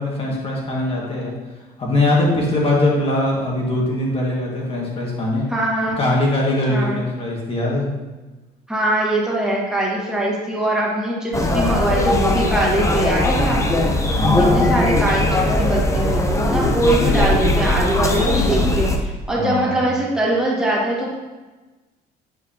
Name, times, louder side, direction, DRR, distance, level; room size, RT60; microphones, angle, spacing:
voice 1, 0.0-1.4 1.8-5.5 6.0-7.9 14.2-14.6 19.3-19.8, left 1 dB, 35° left, -3 dB, 1.9 m, -21 dB
voice 2, 5.5-6.0 6.7-7.0 8.7-13.9 14.4-21.2, right 1 dB, 5° right, -5 dB, 1.9 m, -22 dB
sound 1, 11.3-19.0, left 2 dB, 15° left, 0.7 m, -19 dB
7.9 x 4.9 x 2.9 m, 1.2 s
cardioid pair, 110°, 17 cm